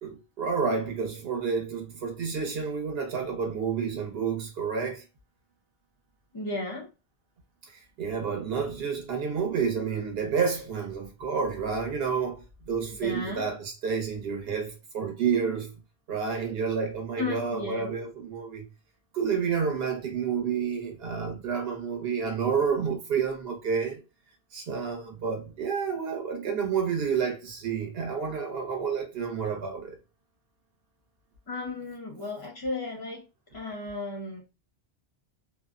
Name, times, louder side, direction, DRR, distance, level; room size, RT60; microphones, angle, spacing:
voice 1, 0.0-5.0 7.7-15.7 16.1-18.6 19.1-24.0 24.5-30.0, right 6 dB, 65° right, 1.0 m, -30 dB
voice 2, 6.3-6.9 13.0-13.5 17.2-17.9 31.5-33.2 33.5-34.4, left 3 dB, 30° left, 0.4 m, -34 dB
2.5 x 2.0 x 2.4 m
omnidirectional pair, 1.1 m